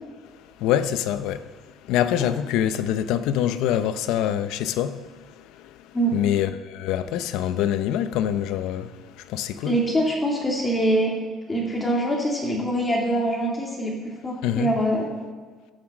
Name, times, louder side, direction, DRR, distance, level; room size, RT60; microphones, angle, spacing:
voice 1, 0.6-9.8 14.4-14.7, left 10 dB, 85° left, 0.6 m, -25 dB
voice 2, 9.6-11.1 11.5-15.1, right 1 dB, 20° left, 2.2 m, -24 dB
11.0 x 7.3 x 7.2 m
cardioid pair, 125°, 0 cm